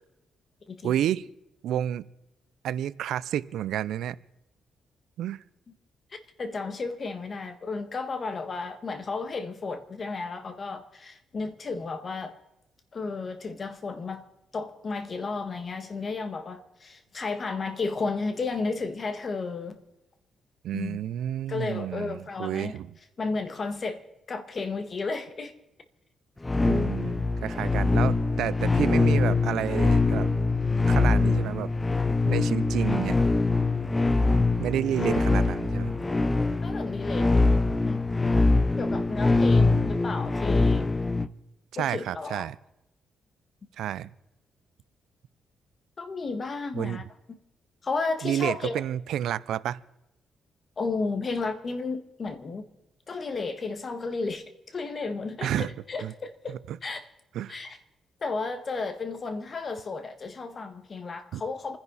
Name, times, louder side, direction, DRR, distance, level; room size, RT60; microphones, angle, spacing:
voice 1, 0.8-1.2 1.6-2.0 2.6-4.2 5.2-5.4 20.6-22.9 26.6-30.3 30.9-31.7 32.3-33.2 34.6-35.9 41.7-42.6 43.8-44.1 46.7-47.0 48.2-49.8 55.4-55.7 56.0-56.1 56.5-56.8 57.3-57.6 61.3-61.4, right 11 dB, 85° right, 0.5 m, -30 dB
voice 2, 6.1-12.4 12.9-14.2 14.5-19.8 20.7-21.0 21.5-22.8 23.2-24.0 24.3-25.5 34.3-34.5 36.6-38.0 38.8-40.9 41.8-42.5 46.0-47.0 47.8-48.8 50.8-52.6 53.1-57.0 57.5-57.8 58.2-61.8, left 4 dB, 35° left, 1.7 m, -33 dB
sound 1, 26.4-41.3, left 3 dB, 15° left, 0.6 m, -23 dB
28.0 x 10.5 x 4.1 m
cardioid pair, 115°, 0 cm